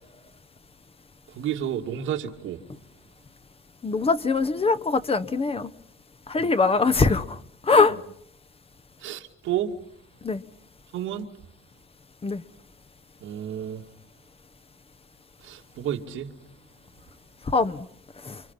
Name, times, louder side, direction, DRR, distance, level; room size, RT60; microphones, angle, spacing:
voice 1, 1.4-2.6 6.4-6.5 7.9-8.0 9.0-9.7 10.9-11.3 13.2-13.8 15.4-16.4, right 10 dB, 85° right, 2.4 m, -31 dB
voice 2, 3.8-5.7 6.3-8.0 10.2-10.4 12.2-12.4 17.5-17.9 18.2-18.4, left 4 dB, 30° left, 1.2 m, -22 dB
29.0 x 25.5 x 5.8 m
cardioid pair, 90°, 20 cm